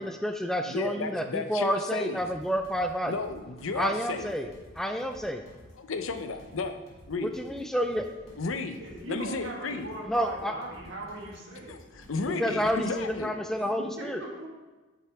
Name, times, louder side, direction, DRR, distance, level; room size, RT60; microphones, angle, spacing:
voice 1, 0.0-3.1 3.8-4.5 4.8-5.4 7.2-8.1 10.1-10.5 12.4-14.2, equal, ahead, 5 dB, 0.3 m, -29 dB
voice 2, 0.7-2.2 3.1-4.3 5.8-6.8 7.1-7.3 8.4-8.8 9.1-9.9 11.7-13.3, left 4 dB, 80° left, 8 dB, 0.7 m, -33 dB
sound 1, 2.1-13.1, equal, 30° left, 2.3 m, -54 dB
voice 3, 8.8-11.7 14.0-14.5, right 1 dB, 65° right, -2 dB, 1.9 m, -39 dB
9.2 x 5.9 x 3.5 m, 1.2 s
head